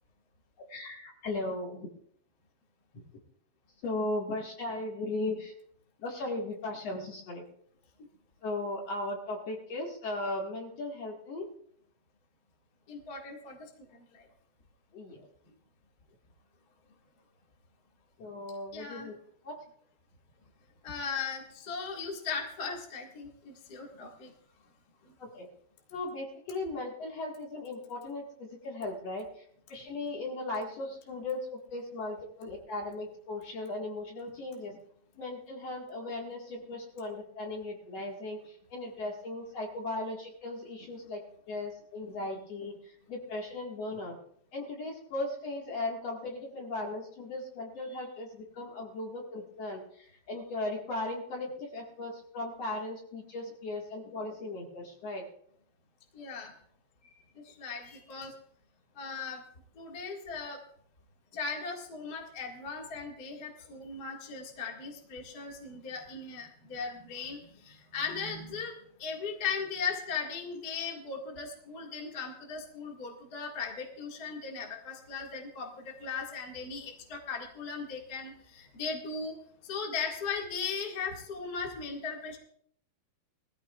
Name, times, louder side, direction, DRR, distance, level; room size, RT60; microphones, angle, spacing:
voice 1, 0.7-1.9 3.8-5.5 6.0-7.4 8.4-11.5 14.9-15.3 18.2-19.1 19.4-19.6 25.2-25.5 25.9-29.3 29.7-34.8 35.2-44.2 44.5-55.2, left 2 dB, 50° left, 0 dB, 2.6 m, -37 dB
voice 2, 12.9-13.7 14.1-14.2 18.7-19.1 20.8-24.3 56.1-56.5 57.4-58.3 59.0-59.4 59.8-60.6 61.3-68.7 69.0-79.4 79.6-82.4, left 5 dB, 35° left, 0 dB, 1.9 m, -38 dB
20.5 x 15.0 x 2.4 m, 0.66 s
omnidirectional pair, 4.3 m